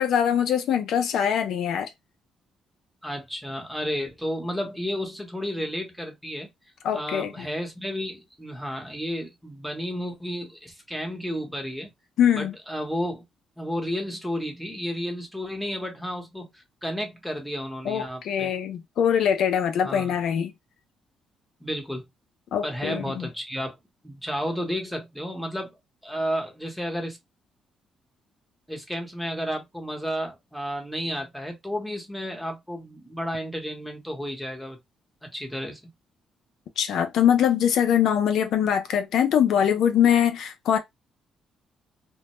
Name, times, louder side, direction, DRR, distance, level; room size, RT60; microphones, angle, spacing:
voice 1, 0.0-1.9 6.8-7.5 12.2-12.5 17.9-20.5 22.5-23.3 36.8-40.8, left 9 dB, 75° left, 0.4 m, -23 dB
voice 2, 3.0-6.5 6.9-11.9 12.3-13.2 13.6-18.5 19.8-20.2 21.6-22.0 22.6-23.8 24.0-25.8 26.0-27.2 28.7-34.8 35.2-35.8, equal, ahead, 0.9 m, -32 dB
2.1 x 2.0 x 2.9 m
cardioid pair, 90°, 0 cm